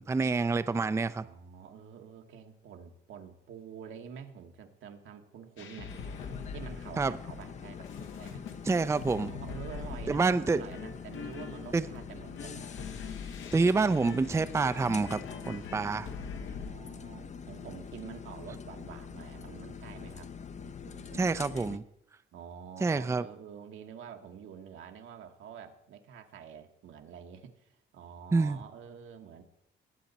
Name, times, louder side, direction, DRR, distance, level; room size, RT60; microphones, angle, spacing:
voice 1, 0.0-1.2 7.0-7.1 8.6-9.3 10.1-10.6 11.7-11.9 13.5-16.1 21.1-21.8 22.8-23.2 28.3-28.6, right 4 dB, 15° right, 12 dB, 0.4 m, -27 dB
voice 2, 1.2-6.0 6.5-7.9 8.2-8.4 9.2-12.7 15.8-20.3 20.6-21.8 22.3-29.4, right 8 dB, 75° right, 5 dB, 1.4 m, -48 dB
sound 1, 5.6-16.7, left 6 dB, 75° left, 1.2 m, -43 dB
sound 2, 5.9-21.8, left 6 dB, 35° left, 0.6 m, -45 dB
19.0 x 7.9 x 4.1 m, 0.76 s
cardioid pair, 90°, 20 cm